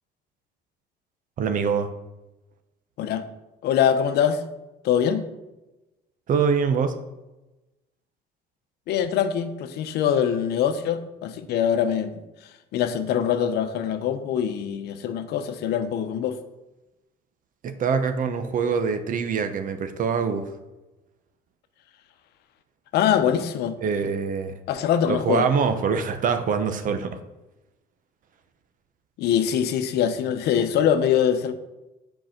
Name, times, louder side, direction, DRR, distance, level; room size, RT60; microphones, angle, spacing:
voice 1, 1.4-1.9 6.3-7.0 17.6-20.5 23.8-24.5 25.1-27.2, right 6 dB, 50° right, 8 dB, 1.0 m, -24 dB
voice 2, 3.6-4.4 4.8-5.3 8.9-12.2 12.7-16.4 22.9-23.8 24.7-25.5 29.2-31.5, left 8 dB, 75° left, 10 dB, 0.8 m, -23 dB
7.8 x 4.7 x 5.9 m, 1.0 s
cardioid pair, 110°, 17 cm